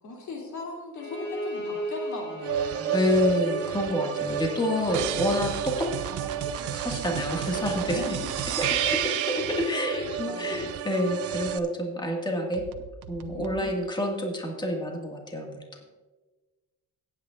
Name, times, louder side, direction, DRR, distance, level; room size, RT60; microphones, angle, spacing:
voice 1, 0.0-3.3 7.9-8.1 8.5-8.6 9.0-9.1 9.8-9.9 10.2-10.7 13.2-13.8, left 2 dB, 70° left, -1 dB, 2.9 m, -39 dB
Bowed string instrument, 1.0-5.2, right 1 dB, 40° left, 3.5 m, -36 dB
sound 1, 2.4-11.6, right 8 dB, 50° right, 0.6 m, -33 dB
voice 2, 2.9-5.9 6.7-8.2 8.6-12.6 13.1-15.6, left 1 dB, 15° left, 0 dB, 1.9 m, -28 dB
sound 2, 4.9-9.8 12.5-13.6, right 10 dB, 85° right, 0.8 m, -32 dB
17.5 x 9.1 x 2.5 m, 1.3 s
cardioid pair, 90°, 30 cm